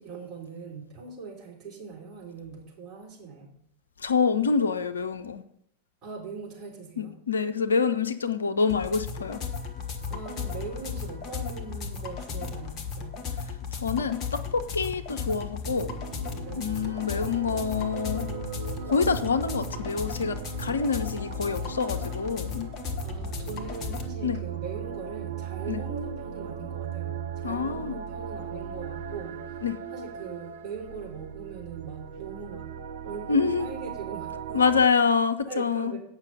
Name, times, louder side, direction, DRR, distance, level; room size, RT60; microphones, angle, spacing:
voice 1, 0.0-3.5 6.0-7.2 10.1-13.2 16.4-16.8 23.0-29.3 29.9-32.7 33.0-34.6 35.5-36.0, right 5 dB, 30° right, -4 dB, 3.5 m, -40 dB
voice 2, 4.0-5.4 7.0-9.4 13.7-15.9 16.6-18.3 18.9-22.7 24.2-24.4 25.7-25.8 27.4-28.0 29.6-29.8 33.3-33.7 34.5-35.9, left 5 dB, 70° left, 10 dB, 0.6 m, -26 dB
sound 1, 8.7-24.1, left 6 dB, 30° left, 1.2 m, -35 dB
sound 2, 15.6-34.9, right 8 dB, 60° right, 0.5 m, -38 dB
8.9 x 5.8 x 5.6 m, 0.74 s
figure-of-eight pair, 90°, 0 cm